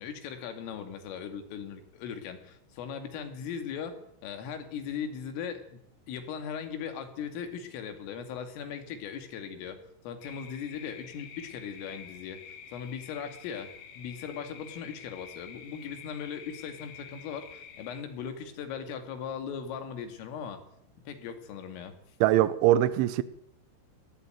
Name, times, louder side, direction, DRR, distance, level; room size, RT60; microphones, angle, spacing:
voice 1, 0.0-4.0 4.2-5.8 6.1-9.8 10.0-12.4 12.7-13.7 14.0-20.6 21.1-21.9, left 7 dB, 80° left, 7 dB, 5.0 m, -38 dB
sound 1, 10.2-18.0, left 7 dB, 60° left, 3.1 m, -48 dB
voice 2, 22.2-23.2, right 13 dB, 75° right, 14 dB, 3.2 m, -22 dB
19.5 x 16.0 x 9.1 m, 0.73 s
omnidirectional pair, 5.8 m